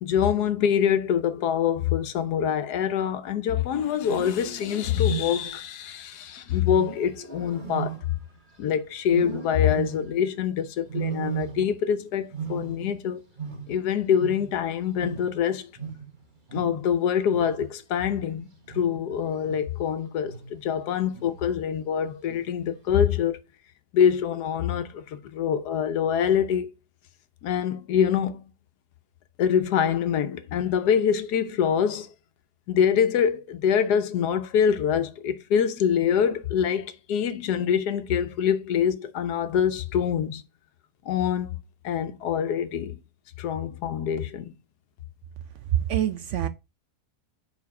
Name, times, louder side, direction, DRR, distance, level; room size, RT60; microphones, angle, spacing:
voice 1, 0.0-8.2 8.6-13.2 13.7-15.7 16.5-18.5 18.7-23.4 23.9-26.7 27.4-28.5 29.4-32.1 32.7-40.4 41.1-41.6 41.8-43.0 43.4-44.6, left 8 dB, 80° left, 1.3 m, -25 dB
Wild animals, 3.9-5.7 6.7-8.6 9.1-10.3 10.9-11.9 12.2-14.7 15.0-19.9 20.2-20.7 21.1-21.6 22.3-22.7, right 8 dB, 35° right, 1.2 m, -36 dB
voice 2, 45.7-46.5, right 11 dB, 70° right, 0.7 m, -25 dB
5.0 x 4.8 x 4.6 m
omnidirectional pair, 1.7 m